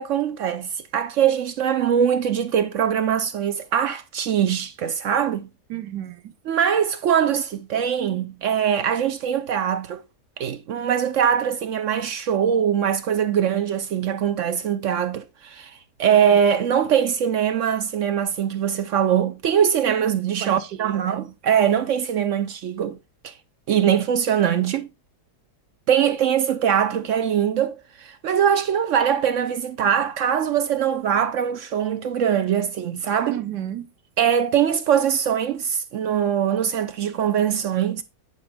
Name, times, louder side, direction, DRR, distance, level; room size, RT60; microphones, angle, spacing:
voice 1, 0.0-5.5 6.5-10.0 10.4-23.0 23.2-23.3 23.7-24.9 25.9-33.4 34.2-38.0, right 8 dB, 65° right, 0.8 m, -22 dB
voice 2, 5.7-6.3 16.3-16.5 20.4-21.2 33.3-33.9, right 11 dB, 85° right, 1.5 m, -33 dB
10.5 x 4.8 x 3.4 m
omnidirectional pair, 1.8 m